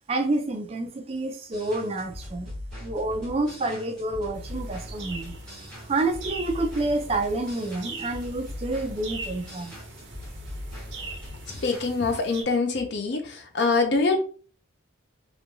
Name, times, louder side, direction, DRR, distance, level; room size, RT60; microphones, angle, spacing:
voice 1, 0.1-2.5 2.8-5.4 5.9-9.8, right 2 dB, 30° right, 0.4 m, -28 dB
sound 1, 1.5-12.0, left 1 dB, 5° left, 1.2 m, -40 dB
sound 2, 4.3-12.4, right 3 dB, 70° right, 0.7 m, -42 dB
voice 2, 11.6-14.2, left 3 dB, 60° left, 0.5 m, -24 dB
3.0 x 2.2 x 2.6 m
head